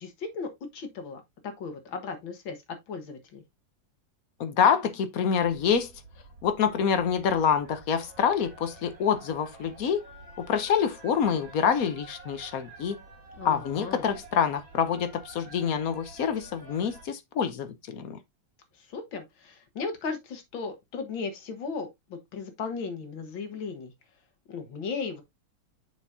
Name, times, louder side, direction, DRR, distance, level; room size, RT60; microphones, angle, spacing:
voice 1, 0.0-3.4 13.4-14.0 18.8-23.9 24.5-25.2, left 4 dB, 75° left, 2.3 m, -36 dB
voice 2, 4.4-5.9 6.4-10.0 10.4-13.0 13.4-18.2, left 7 dB, 55° left, 1.1 m, -26 dB
sound 1, 5.4-17.1, right 3 dB, 75° right, 3.5 m, -49 dB
7.2 x 6.3 x 2.7 m
omnidirectional pair, 2.1 m